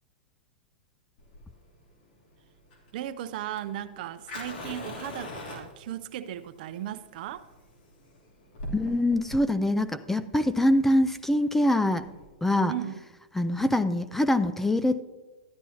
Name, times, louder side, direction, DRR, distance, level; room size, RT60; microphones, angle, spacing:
Fire, 1.2-12.2, left 1 dB, 70° left, 3.1 m, -43 dB
voice 1, 2.9-7.5 12.7-13.0, right 11 dB, 55° right, 0.6 m, -36 dB
voice 2, 8.7-12.1 12.4-12.7 13.3-15.0, left 1 dB, 5° left, 0.3 m, -24 dB
13.0 x 10.5 x 2.8 m
hypercardioid pair, 135°, 6 cm